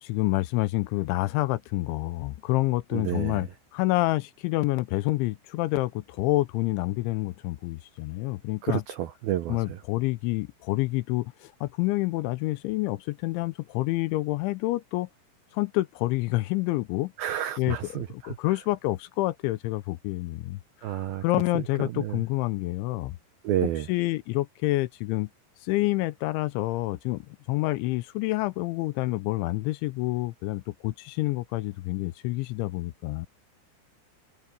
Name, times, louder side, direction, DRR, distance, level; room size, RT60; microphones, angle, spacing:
voice 1, 0.0-8.8 9.5-15.1 15.5-17.1 17.6-23.2 23.6-25.3 25.6-27.2 27.5-33.3, left 19 dB, 80° left, 2.9 m, -28 dB
voice 2, 2.9-3.4 8.6-9.6 17.2-18.1 20.8-21.2 22.0-22.2 23.4-23.9, right 12 dB, 85° right, 2.1 m, -29 dB
omnidirectional pair, 5.6 m